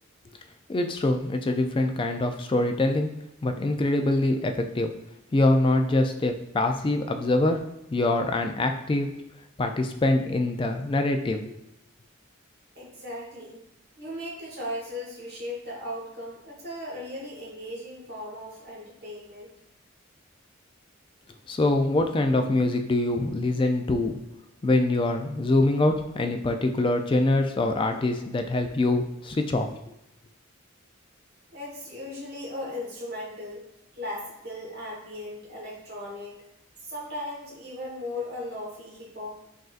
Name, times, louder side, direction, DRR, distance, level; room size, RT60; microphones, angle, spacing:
voice 1, 0.7-3.1 3.4-4.9 5.3-7.6 7.9-9.1 9.6-11.4 21.5-24.1 24.6-29.7, left 2 dB, 25° left, 5 dB, 0.3 m, -24 dB
voice 2, 12.7-13.6 14.0-19.5 31.5-33.6 33.9-36.4 36.8-39.4, left 1 dB, 50° right, -4 dB, 1.3 m, -37 dB
6.1 x 2.6 x 2.4 m, 0.85 s
head